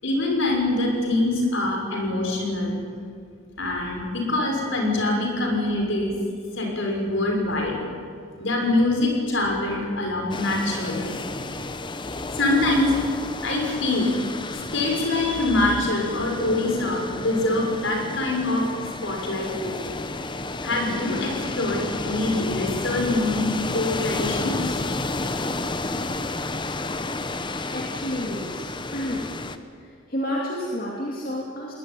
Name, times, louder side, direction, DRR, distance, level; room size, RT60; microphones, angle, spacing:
voice 1, 0.0-2.8 3.6-6.2 6.5-7.8 8.4-11.1 12.3-13.0 13.4-14.1 14.5-18.6 19.0-19.8 20.6-23.5 23.7-24.8, left 2 dB, 60° left, 1 dB, 6.3 m, -24 dB
sound 1, 10.3-29.6, left 2 dB, 20° left, 0.9 m, -31 dB
voice 2, 27.7-28.6 28.9-29.3 29.7-31.7, equal, 40° left, -2 dB, 2.6 m, -30 dB
20.0 x 20.0 x 9.9 m, 2.2 s
head